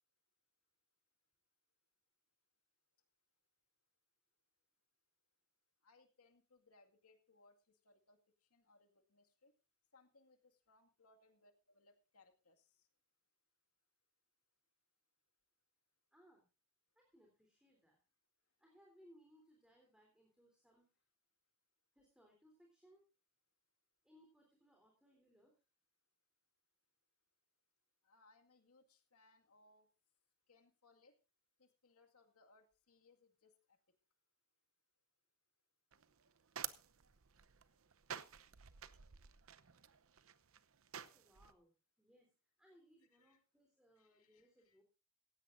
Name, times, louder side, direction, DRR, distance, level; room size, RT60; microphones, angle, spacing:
voice 1, 5.8-9.5 9.9-12.9 28.0-29.9 30.5-31.2 31.6-34.0 43.1-43.4 44.0-44.8, left 3 dB, 90° left, 5 dB, 2.1 m, -70 dB
voice 2, 16.1-16.5 17.0-18.0 18.6-20.8 22.0-23.0 24.0-25.6 41.0-42.3 42.6-44.8, equal, 5° right, 0 dB, 3.5 m, -68 dB
sound 1, 35.9-41.5, right 9 dB, 65° right, 0.8 m, -51 dB
16.5 x 16.0 x 2.6 m, 0.29 s
head